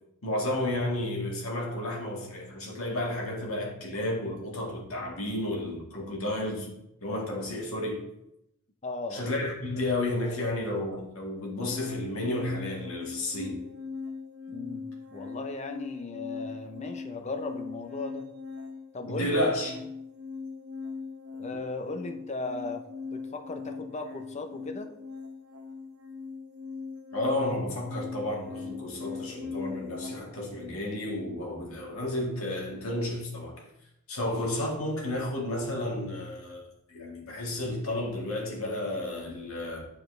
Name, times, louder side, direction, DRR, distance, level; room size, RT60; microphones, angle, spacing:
voice 1, 0.2-6.7 7.0-8.0 9.1-13.6 19.1-19.7 27.1-33.6 34.1-36.6 36.9-39.9, left 1 dB, 65° left, 1.9 m, -32 dB
voice 2, 8.8-9.3 14.5-14.8 15.1-18.3 18.9-19.3 21.4-24.9, left 3 dB, 30° left, 0.6 m, -37 dB
sound 1, 11.6-30.1, left 4 dB, 85° right, 1.1 m, -40 dB
10.0 x 4.5 x 3.2 m
head